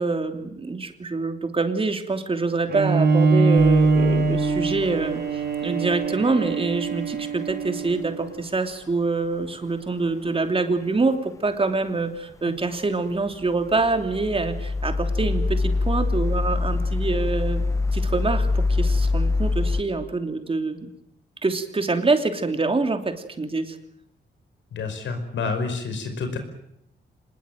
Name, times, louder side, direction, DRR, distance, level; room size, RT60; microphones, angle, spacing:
voice 1, 0.0-17.6 17.9-20.9 21.4-23.8, right 3 dB, 30° right, 7 dB, 2.9 m, -25 dB
Bowed string instrument, 2.7-8.3, right 4 dB, 60° right, 3.7 m, -22 dB
sound 1, 3.6-5.1 13.7-19.8, left 3 dB, 15° left, 1.4 m, -25 dB
voice 2, 24.7-26.4, left 4 dB, 85° left, 7 dB, 5.4 m, -28 dB
25.5 x 20.5 x 9.2 m, 0.77 s
cardioid pair, 100°, 19 cm